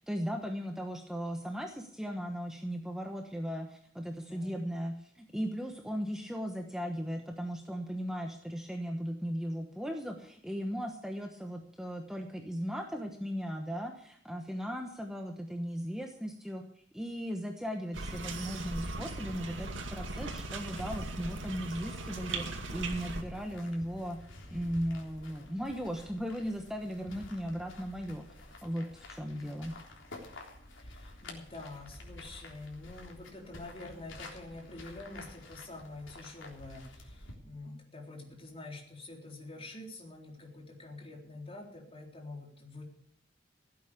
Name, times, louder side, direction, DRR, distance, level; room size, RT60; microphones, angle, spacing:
voice 1, 0.0-16.6 16.9-24.2 24.5-28.3 28.6-29.7, equal, 5° right, 3 dB, 1.1 m, -37 dB
voice 2, 4.1-4.7 29.2-29.7 30.7-42.8, left 2 dB, 30° left, 0 dB, 3.7 m, -47 dB
sound 1, 17.9-23.2, right 2 dB, 80° right, 2.2 m, -39 dB
sound 2, 20.8-37.3, left 2 dB, 85° left, 3.6 m, -50 dB
16.5 x 8.7 x 6.9 m, 0.70 s
head